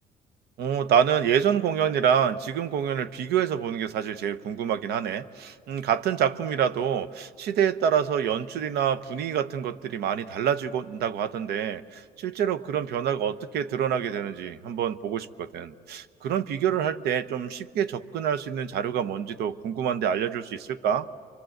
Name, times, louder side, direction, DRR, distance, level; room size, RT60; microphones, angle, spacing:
voice 1, 0.6-21.1, right 8 dB, 75° right, 13 dB, 0.9 m, -27 dB
29.5 x 24.0 x 7.9 m, 2.1 s
cardioid pair, 110°, 17 cm